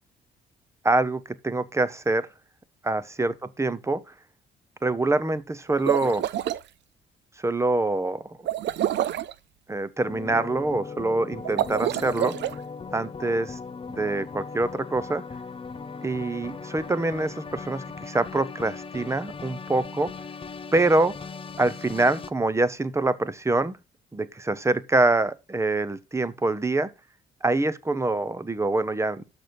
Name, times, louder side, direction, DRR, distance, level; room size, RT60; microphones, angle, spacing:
voice 1, 0.8-2.3 2.8-4.0 4.8-6.2 7.4-8.2 9.7-12.3 12.9-13.6 13.9-15.2 16.0-20.1 20.7-21.2 21.6-23.7 24.1-26.9 27.4-29.2, right 2 dB, 15° right, 0.7 m, -25 dB
sound 1, 5.7-6.6 8.4-9.3 11.4-12.5, right 12 dB, 65° right, 0.5 m, -27 dB
sound 2, 10.0-22.3, left 5 dB, 25° left, 0.6 m, -38 dB
6.4 x 6.0 x 5.1 m
cardioid pair, 90°, 20 cm